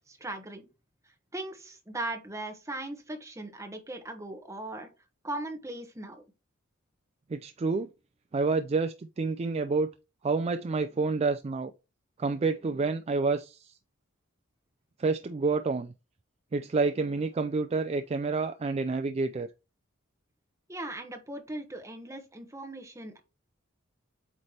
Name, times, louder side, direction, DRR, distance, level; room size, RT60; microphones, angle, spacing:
voice 1, 0.1-0.6 1.3-4.9 5.2-6.2 20.7-23.2, right 2 dB, 15° right, 1.2 m, -38 dB
voice 2, 7.3-7.9 8.3-9.9 10.2-11.7 12.2-13.7 15.0-15.9 16.5-19.5, right 4 dB, 30° right, 0.4 m, -28 dB
8.3 x 3.2 x 4.3 m
head